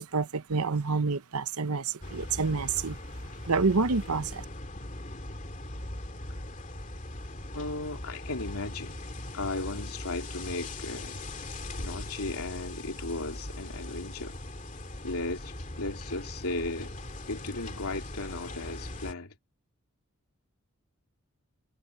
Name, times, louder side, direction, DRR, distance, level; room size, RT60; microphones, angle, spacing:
voice 1, 0.0-3.0 3.4-4.4, right 4 dB, 85° right, 0.9 m, -28 dB
sound 1, 2.0-19.1, left 1 dB, 35° left, 2.7 m, -40 dB
voice 2, 7.5-8.9 9.3-11.2 11.8-14.4 15.0-16.9 17.3-19.3, left 2 dB, 85° left, 2.9 m, -36 dB
head